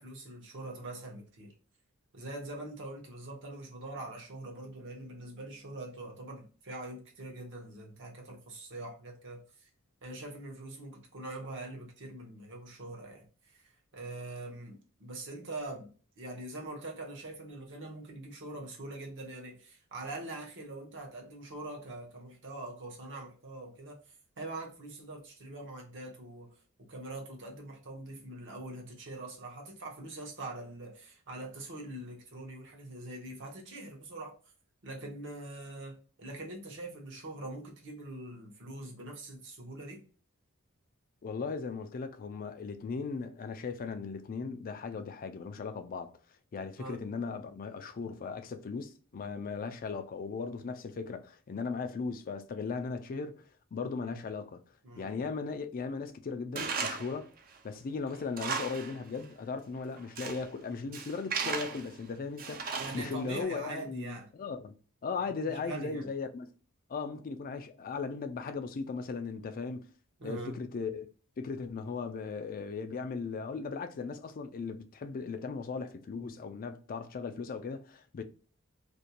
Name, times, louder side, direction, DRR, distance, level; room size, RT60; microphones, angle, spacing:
voice 1, 0.0-1.5 2.1-9.7 10.0-15.9 16.2-26.5 26.8-34.4 34.8-40.0 46.8-47.0 54.0-54.2 54.8-55.2 62.8-64.3 65.2-66.1 70.2-70.6, right 2 dB, 60° right, 0.9 m, -43 dB
voice 2, 41.2-46.1 46.5-53.4 53.7-54.6 55.0-57.3 57.6-64.7 65.0-66.5 66.9-69.9 70.2-71.1 71.4-78.2, left 4 dB, 40° left, 0.3 m, -37 dB
Tools, 56.6-57.2 57.6-57.7 58.1-59.0 59.2-59.3 59.9-60.5 60.9-61.9 62.4-63.3, right 5 dB, 40° right, 0.4 m, -36 dB
2.5 x 2.2 x 2.7 m
head